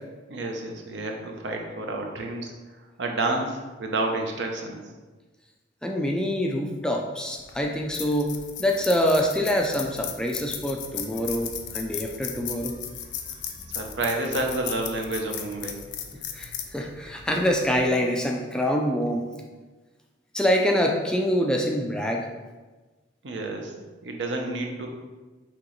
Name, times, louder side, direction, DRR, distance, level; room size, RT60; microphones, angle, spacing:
voice 1, 0.3-4.8 13.7-15.8 23.2-23.7 24.0-24.9, right 2 dB, 70° right, 2 dB, 0.7 m, -30 dB
voice 2, 5.8-8.3 8.6-12.7 16.3-19.3 20.3-22.3, equal, 5° left, 0 dB, 0.3 m, -25 dB
sound 1, 7.4-17.8, left 8 dB, 70° left, 0.5 m, -36 dB
5.9 x 2.9 x 3.1 m, 1.2 s
head